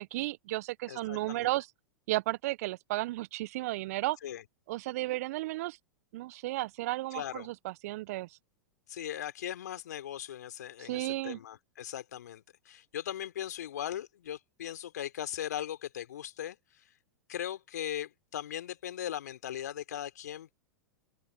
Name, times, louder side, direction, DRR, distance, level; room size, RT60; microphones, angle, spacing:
voice 1, 0.0-1.7 2.1-4.2 4.7-5.8 6.1-8.3 10.8-11.4, right 18 dB, 55° right, 0.9 m, -33 dB
voice 2, 0.9-1.5 4.2-4.4 7.1-7.5 8.9-16.6 17.3-20.5, left 11 dB, 65° left, 3.5 m, -39 dB
open air
figure-of-eight pair, 100°, 10 cm